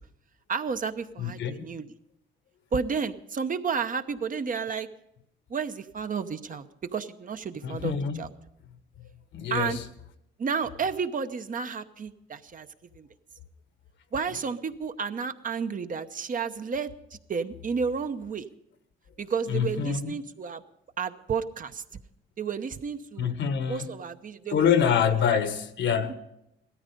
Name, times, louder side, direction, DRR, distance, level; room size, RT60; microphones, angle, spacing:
voice 1, 0.5-1.9 2.7-4.9 5.5-8.3 9.5-9.8 10.4-12.7 12.9-13.1 14.1-16.9 17.3-18.5 19.2-20.6 21.0-21.8 22.4-23.3 23.7-24.8 25.3-25.4 26.1-26.2, right 5 dB, 40° right, 0.9 m, -31 dB
voice 2, 1.2-1.5 7.6-8.3 9.0-9.1 9.3-9.8 19.5-20.1 23.2-23.9 24.5-26.1, left 8 dB, 70° left, 1.5 m, -26 dB
16.5 x 13.5 x 5.3 m
cardioid pair, 90°, 20 cm